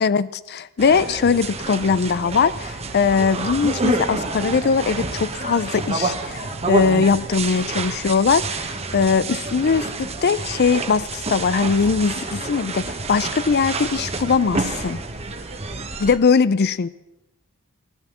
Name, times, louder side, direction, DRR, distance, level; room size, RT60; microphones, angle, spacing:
voice 1, 0.0-15.0 16.0-16.9, left 5 dB, 50° left, 17 dB, 0.4 m, -20 dB
sound 1, 0.8-16.2, right 3 dB, 30° right, 1.2 m, -28 dB
15.0 x 13.0 x 7.0 m, 0.96 s
head